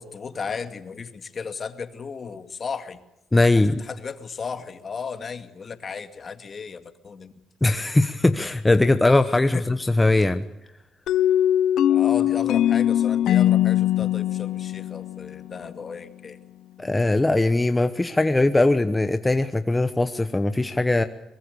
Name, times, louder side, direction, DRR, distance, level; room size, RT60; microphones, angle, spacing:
voice 1, 0.0-3.0 3.5-7.3 9.5-9.6 11.9-16.4, left 5 dB, 40° left, 9 dB, 2.3 m, -35 dB
voice 2, 3.3-3.8 7.6-10.5 16.8-21.0, left 2 dB, 15° left, 9 dB, 1.1 m, -20 dB
sound 1, 11.1-15.8, left 11 dB, 75° left, 0.8 m, -21 dB
24.0 x 22.0 x 6.9 m, 0.91 s
cardioid pair, 90°, 0 cm